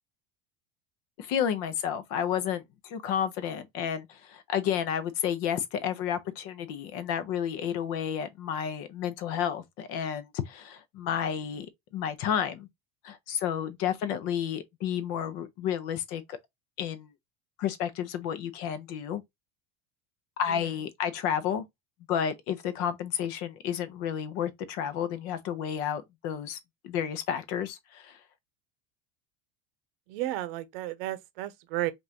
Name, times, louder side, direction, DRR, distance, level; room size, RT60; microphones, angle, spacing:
voice 1, 1.2-11.7 11.9-12.7 13.0-16.4 16.8-17.1 17.6-19.2 20.4-21.6 22.1-26.6 26.8-28.2, left 9 dB, 45° left, 0.8 m, -31 dB
voice 2, 30.1-31.9, right 15 dB, 60° right, 0.8 m, -33 dB
5.3 x 2.6 x 2.9 m
cardioid pair, 180°, 32 cm